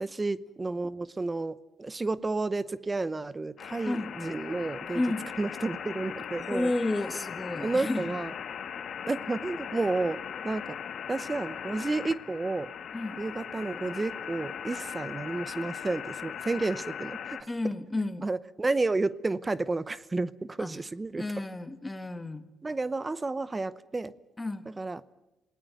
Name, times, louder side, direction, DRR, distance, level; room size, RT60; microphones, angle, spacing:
voice 1, 0.0-5.0 5.4-6.7 7.6-8.3 9.1-10.8 11.1-12.7 13.2-17.7 18.2-21.4 22.6-24.1 24.7-25.1, right 3 dB, 25° right, 17 dB, 0.8 m, -31 dB
sound 1, 3.6-17.4, left 8 dB, 60° left, 1.7 m, -39 dB
voice 2, 6.5-8.1 12.9-13.2 17.5-18.3 20.6-20.7 21.2-22.5 24.4-24.7, left 2 dB, 15° left, 10 dB, 2.0 m, -31 dB
27.5 x 18.0 x 9.4 m, 1.0 s
cardioid pair, 90°, 0 cm